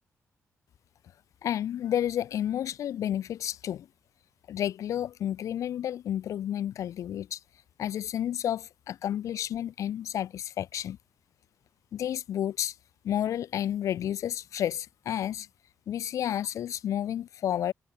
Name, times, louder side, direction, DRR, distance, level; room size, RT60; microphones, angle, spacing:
voice 1, 1.4-3.9 4.5-7.4 7.8-11.0 11.9-12.7 13.0-15.5 15.9-17.7, left 10 dB, 80° left, 3.4 m, -31 dB
cardioid pair, 90°, 5 cm